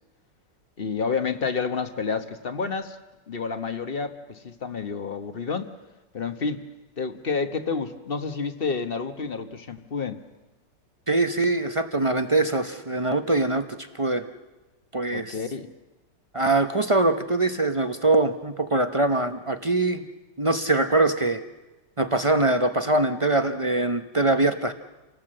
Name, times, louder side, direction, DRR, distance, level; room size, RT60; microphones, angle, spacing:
voice 1, 0.8-3.0 3.3-5.7 6.1-6.6 7.0-10.2 15.1-15.7, left 5 dB, 35° left, 9 dB, 1.1 m, -29 dB
voice 2, 11.1-14.2 14.9-15.4 16.3-20.1 20.4-21.4 22.0-24.7, right 2 dB, 35° right, 8 dB, 0.5 m, -23 dB
28.5 x 19.0 x 7.7 m, 1.1 s
omnidirectional pair, 1.9 m